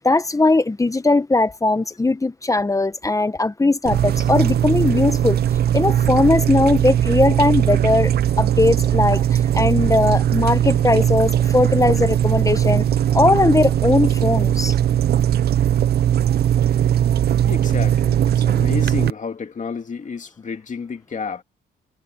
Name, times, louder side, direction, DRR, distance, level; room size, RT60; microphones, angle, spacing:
voice 1, 0.0-5.4 5.7-8.1 8.4-12.9 13.1-14.7, left 2 dB, 15° left, 1.1 m, -19 dB
sound 1, 3.9-19.1, right 10 dB, 55° right, 0.6 m, -19 dB
voice 2, 17.5-21.4, left 5 dB, 40° left, 2.4 m, -31 dB
cardioid pair, 90°, 20 cm